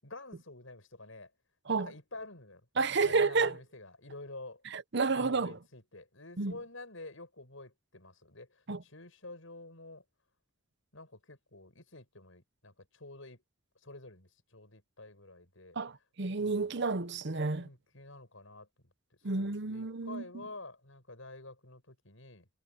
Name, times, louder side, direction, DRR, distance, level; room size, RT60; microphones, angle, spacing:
voice 1, 0.0-1.3 1.8-2.6 3.0-4.6 5.1-10.0 10.9-13.4 13.8-15.8 16.4-16.6 17.5-18.9 19.3-22.5, left 2 dB, 70° left, 7.5 m, -49 dB
voice 2, 2.8-3.6 4.7-5.6 6.4-6.5 8.7-8.8 15.8-17.7 19.2-20.4, right 4 dB, 55° right, 0.8 m, -30 dB
head